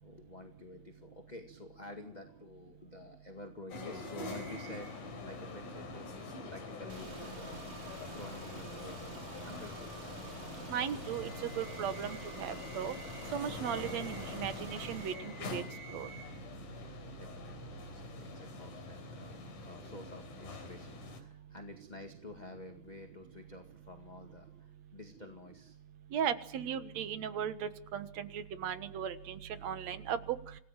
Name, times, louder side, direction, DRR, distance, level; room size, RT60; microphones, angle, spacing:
voice 1, 0.0-10.2 16.8-25.8, left 2 dB, 20° left, 5 dB, 1.5 m, -50 dB
sound 1, 3.7-21.2, left 3 dB, 80° left, 4.7 m, -44 dB
Car / Engine, 6.9-15.1, right 4 dB, 30° right, 2.4 m, -49 dB
voice 2, 10.7-12.9 13.3-15.6 15.9-16.1 26.1-30.4, right 8 dB, 65° right, 11 dB, 2.5 m, -37 dB
27.5 x 19.0 x 7.4 m, 0.70 s
omnidirectional pair, 3.5 m